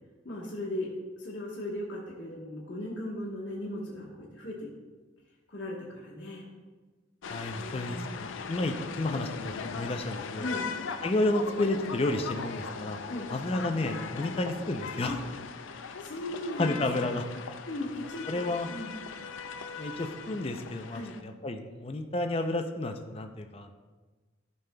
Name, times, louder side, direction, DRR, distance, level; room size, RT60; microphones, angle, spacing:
voice 1, 0.2-0.9 1.2-4.7 5.5-6.5 7.5-8.2 10.4-10.7 13.1-13.3 15.1-15.2 16.0-17.1 17.6-19.0 20.9-21.2, left 1 dB, 70° left, -5 dB, 1.3 m, -37 dB
sound 1, 7.2-21.2, left 5 dB, 85° left, 0.4 m, -39 dB
voice 2, 7.2-10.5 11.0-13.0 13.3-15.1 16.6-17.2 18.3-18.7 19.8-23.7, left 2 dB, 30° left, 5 dB, 0.4 m, -31 dB
12.0 x 5.4 x 2.2 m, 1.3 s
head